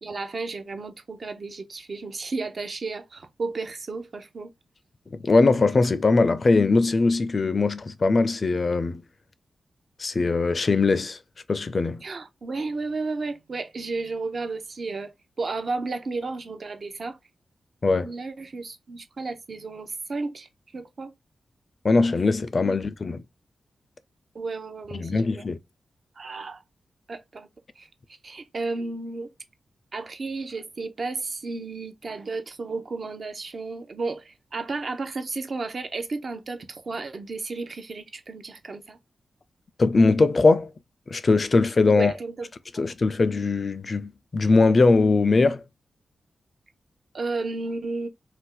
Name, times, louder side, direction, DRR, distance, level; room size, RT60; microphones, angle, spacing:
voice 1, 0.0-4.5 12.0-17.2 18.0-20.5 20.7-21.1 22.6-22.8 24.3-25.4 26.2-26.6 27.1-27.5 27.8-27.9 28.2-29.3 29.9-39.0 41.9-42.5 42.7-42.8 47.1-48.1, right 3 dB, 55° right, 0.6 m, -33 dB
voice 2, 5.1-9.0 10.0-11.2 11.5-12.0 17.8-18.1 21.8-23.2 24.9-25.6 39.8-40.7 41.1-42.1 42.7-45.6, left 3 dB, 50° left, 0.4 m, -21 dB
2.6 x 2.1 x 3.8 m
cardioid pair, 55°, 0 cm